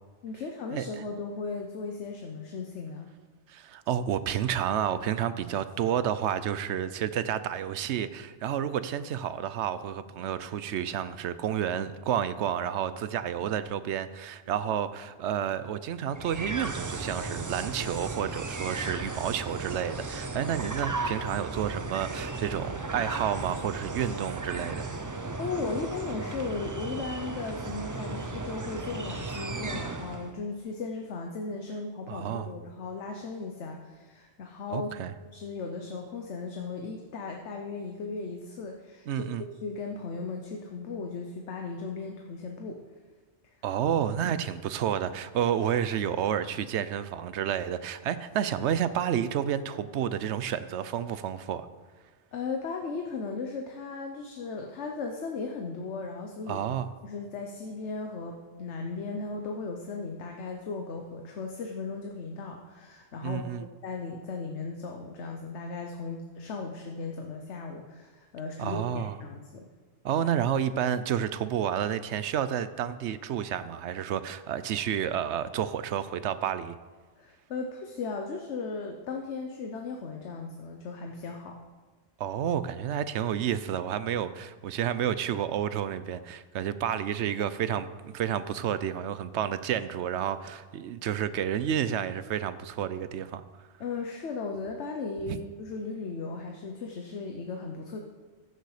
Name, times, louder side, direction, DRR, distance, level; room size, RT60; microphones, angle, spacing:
voice 1, 0.2-3.1 25.3-34.9 35.3-42.8 52.3-56.6 57.0-63.4 63.8-69.6 77.2-81.6 93.8-98.0, left 4 dB, 80° left, 3 dB, 1.2 m, -36 dB
voice 2, 3.5-24.9 32.1-32.5 34.7-35.1 39.1-39.4 43.6-51.7 56.5-56.9 63.2-63.6 68.6-69.2 70.0-76.8 82.2-93.4 95.3-95.4, right 9 dB, 80° right, 13 dB, 0.9 m, -30 dB
sound 1, 16.1-30.3, right 3 dB, 30° right, 0.3 m, -35 dB
14.5 x 6.7 x 4.9 m, 1.4 s
omnidirectional pair, 1.2 m